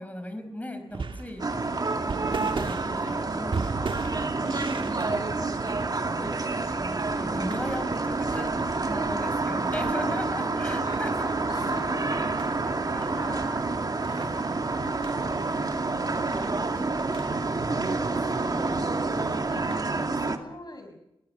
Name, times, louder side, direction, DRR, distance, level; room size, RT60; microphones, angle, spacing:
voice 1, 0.0-1.4 2.0-8.6 8.9-11.3 12.1-13.7 14.2-14.6 14.9-15.4 16.2-16.6 17.0-17.2 19.9-20.2, left 1 dB, 15° left, 8 dB, 4.9 m, -39 dB
sound 1, 0.9-20.1, right 4 dB, 60° right, 1.5 m, -40 dB
sound 2, 1.4-20.4, right 3 dB, 40° right, 2.3 m, -28 dB
voice 2, 8.2-8.6 9.9-12.3 14.0-15.7 16.3-21.0, left 2 dB, 45° left, 7 dB, 5.9 m, -45 dB
22.5 x 19.0 x 6.7 m, 0.84 s
wide cardioid pair, 80°, 10 cm